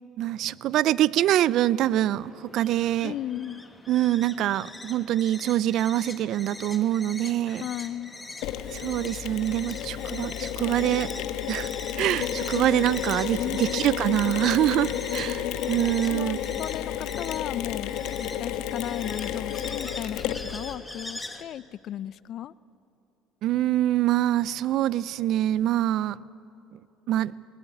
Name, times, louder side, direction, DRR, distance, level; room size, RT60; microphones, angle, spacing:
voice 1, 0.2-3.2 3.9-7.6 8.7-11.1 11.5-16.4 23.4-26.2 26.7-26.8 27.1-27.3, right 13 dB, 60° right, 20 dB, 0.5 m, -25 dB
sound 1, 1.7-21.4, left 2 dB, 10° left, 1.4 m, -43 dB
voice 2, 3.0-3.7 7.5-8.1 13.4-13.8 16.0-17.9 18.2-22.5, left 11 dB, 50° left, 20 dB, 0.4 m, -35 dB
Mechanisms, 8.4-20.7, left 10 dB, 75° left, 1.2 m, -32 dB
20.0 x 19.5 x 8.6 m, 2.7 s
cardioid pair, 115°, 0 cm